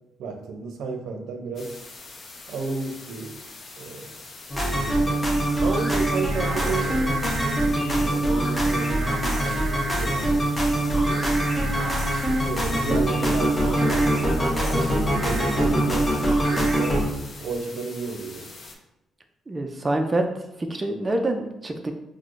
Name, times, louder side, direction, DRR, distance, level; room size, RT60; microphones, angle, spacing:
voice 1, 0.2-1.7 2.5-3.3 3.8-4.2 4.7-5.2 5.6-10.4 11.0-11.5 12.4-14.1 14.5-14.8 15.1-17.0 17.4-18.5, right 4 dB, 80° right, 3 dB, 0.5 m, -33 dB
sound 1, 1.6-18.8, left 3 dB, 60° left, 0.5 m, -43 dB
sound 2, 4.5-17.0, right 1 dB, 20° left, 0.7 m, -23 dB
sound 3, 6.3-7.7 8.7-10.1 11.0-12.4 13.8-14.1 15.1-15.5 16.4-16.8, right 3 dB, 45° right, 0.8 m, -35 dB
voice 2, 19.5-20.3 20.6-21.9, right 1 dB, 25° right, 4 dB, 0.3 m, -26 dB
4.5 x 2.0 x 2.4 m, 0.88 s
cardioid pair, 90°, 0 cm